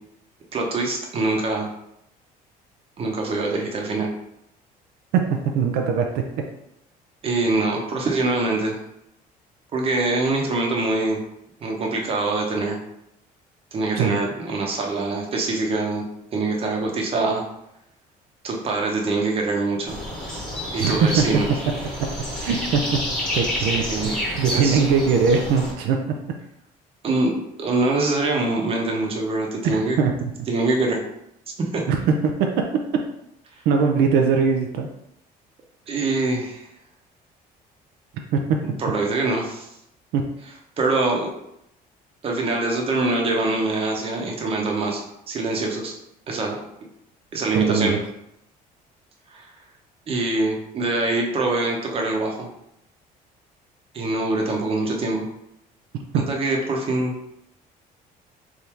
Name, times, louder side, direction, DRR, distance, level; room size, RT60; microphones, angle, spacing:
voice 1, 0.5-1.7 3.0-4.1 7.2-8.8 9.7-11.2 11.6-12.8 13.7-16.0 16.3-17.4 18.4-20.0 20.7-21.5 23.6-24.1 24.5-24.8 27.0-27.3 27.6-30.0 30.5-31.0 31.7-31.8 35.9-36.7 38.6-39.7 40.8-41.3 42.2-45.9 46.3-46.6 47.3-48.0 49.3-49.5 50.1-52.5 53.9-55.2 56.1-57.1, right 2 dB, 35° right, 0 dB, 0.9 m, -24 dB
voice 2, 5.1-6.2 13.9-14.2 20.8-21.2 22.4-22.8 23.3-26.0 29.6-30.1 31.9-32.5 33.7-34.9 38.3-38.6 40.1-40.2 47.5-48.0 56.1-56.2, right 5 dB, 80° right, 3 dB, 0.5 m, -21 dB
sound 1, 19.9-25.7, left 1 dB, 5° left, 1.1 m, -29 dB
3.5 x 2.7 x 4.4 m, 0.80 s
cardioid pair, 135°, 16 cm